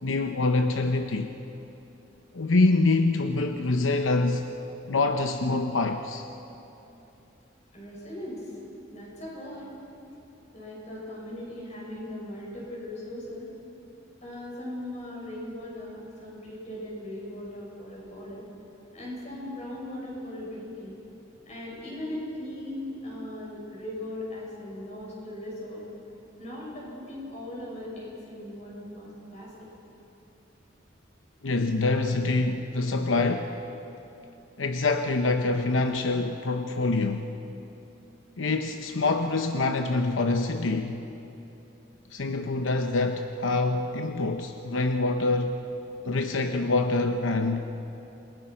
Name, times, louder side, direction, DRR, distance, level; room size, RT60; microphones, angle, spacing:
voice 1, 0.0-1.3 2.3-4.5 4.9-6.2 31.4-33.5 34.6-37.3 38.4-41.0 42.1-45.6 46.0-47.7, left 3 dB, 85° left, 6 dB, 0.8 m, -25 dB
voice 2, 7.7-8.5 8.9-9.7 10.5-13.5 14.2-18.5 18.9-21.0 21.4-25.8 26.4-29.5, left 1 dB, 35° left, -4 dB, 7.1 m, -38 dB
28.0 x 20.0 x 5.8 m, 3.0 s
head